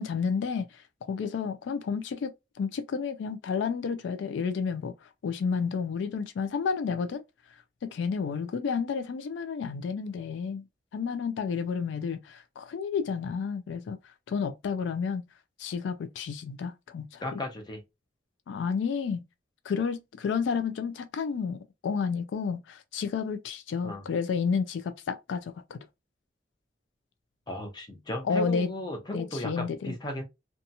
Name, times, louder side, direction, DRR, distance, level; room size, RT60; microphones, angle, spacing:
voice 1, 0.0-7.2 7.8-10.6 10.9-15.3 15.6-17.4 18.5-19.2 19.6-25.8 28.3-28.7 29.1-29.9, left 5 dB, 80° left, 0.3 m, -31 dB
voice 2, 17.2-17.8 23.8-24.0 27.5-30.2, left 1 dB, 25° left, 0.6 m, -35 dB
2.8 x 2.3 x 2.6 m
head